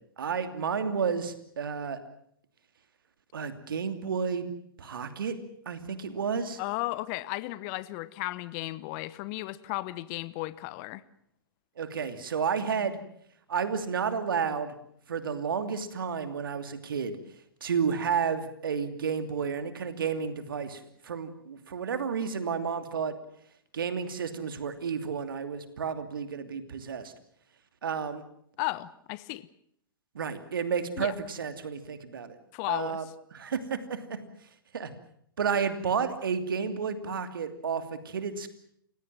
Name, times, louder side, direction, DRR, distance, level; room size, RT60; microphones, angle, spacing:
voice 1, 0.2-2.0 3.3-4.5 4.8-5.3 5.7-6.6 11.8-13.0 13.5-14.7 15.1-17.2 17.6-23.1 23.7-27.1 27.8-28.2 30.1-32.4 32.7-33.0 33.3-34.2 34.7-34.9 35.4-38.5, right 6 dB, 70° right, 9 dB, 2.7 m, -31 dB
voice 2, 6.6-11.0 28.6-29.5 31.0-31.1 32.5-33.0, left 19 dB, 40° left, 18 dB, 1.0 m, -34 dB
29.5 x 17.0 x 7.5 m, 0.68 s
figure-of-eight pair, 110°, 12 cm